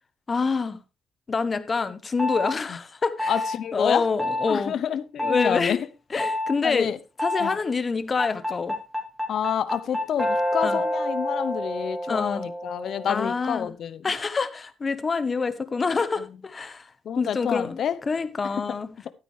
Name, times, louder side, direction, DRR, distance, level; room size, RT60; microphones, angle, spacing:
voice 1, 0.3-0.8 1.3-3.3 3.7-4.7 5.2-5.8 6.1-6.9 7.2-8.8 10.6-10.8 12.1-12.4 13.1-13.7 14.0-16.9 17.2-17.8 18.1-18.9, left 4 dB, 35° left, 1.1 m, -26 dB
sound 1, 2.2-2.5 3.2-3.6 4.2-4.6 5.2-5.5 6.2-6.5 7.2-7.6 8.2-13.3, left 1 dB, ahead, 3.0 m, -28 dB
voice 2, 3.3-4.1 4.5-5.9 6.6-7.0 7.4-7.6 9.3-14.1 16.2-16.4 17.0-18.0, left 8 dB, 65° left, 0.8 m, -28 dB
12.5 x 9.0 x 3.2 m
cardioid pair, 90°, 0 cm